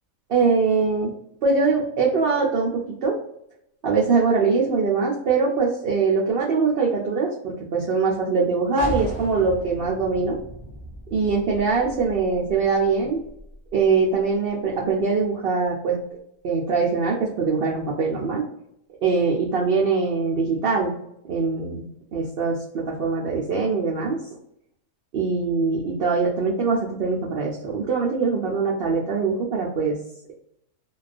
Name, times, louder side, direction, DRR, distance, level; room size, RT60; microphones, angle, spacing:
voice 1, 0.3-1.1 1.4-3.2 3.8-10.4 11.1-13.2 13.7-16.0 16.4-18.4 19.0-20.9 21.3-21.8 22.1-24.2 25.1-29.9, right 4 dB, 85° right, -3 dB, 0.5 m, -22 dB
sound 1, 8.8-14.3, right 1 dB, 20° right, 0.4 m, -37 dB
2.3 x 2.3 x 2.4 m, 0.76 s
omnidirectional pair, 1.5 m